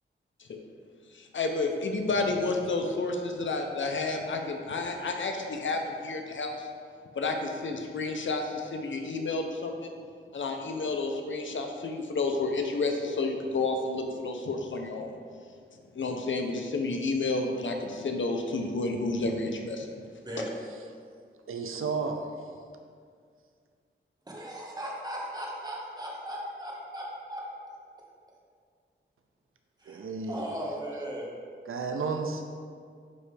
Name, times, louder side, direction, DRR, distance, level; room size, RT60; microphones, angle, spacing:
voice 1, 1.1-6.7 7.2-9.9 10.3-15.2 15.9-19.9, left 3 dB, 65° left, 3 dB, 0.7 m, -30 dB
voice 2, 21.5-22.5 29.9-30.5 31.7-32.4, right 4 dB, 80° right, 5 dB, 0.6 m, -32 dB
voice 3, 24.3-27.5 29.8-31.3, equal, 20° right, -3 dB, 1.1 m, -37 dB
9.4 x 3.3 x 3.3 m, 2.1 s
wide cardioid pair, 80°, 21 cm